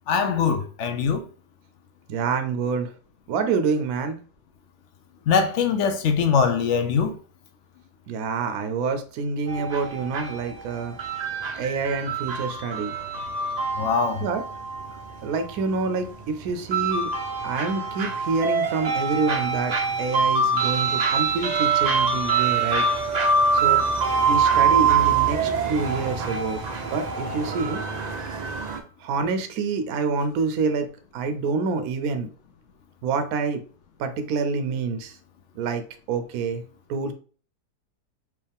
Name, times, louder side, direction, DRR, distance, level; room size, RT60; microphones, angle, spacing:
voice 1, 0.1-1.2 5.3-7.2 13.8-14.2, left 6 dB, 60° left, 0.8 m, -22 dB
voice 2, 2.1-2.9 3.3-4.2 8.1-11.0 11.6-12.9 14.2-14.4 15.2-17.1 17.4-22.8 23.5-23.8 24.3-26.6 26.9-28.0 29.0-30.9 31.1-32.3 33.0-33.6 34.0-35.2 35.6-35.8 36.1-36.6 36.9-37.1, right 4 dB, 70° right, 1.0 m, -27 dB
sound 1, 9.5-28.8, right 5 dB, 50° right, 0.5 m, -24 dB
4.7 x 2.9 x 3.4 m
omnidirectional pair, 1.7 m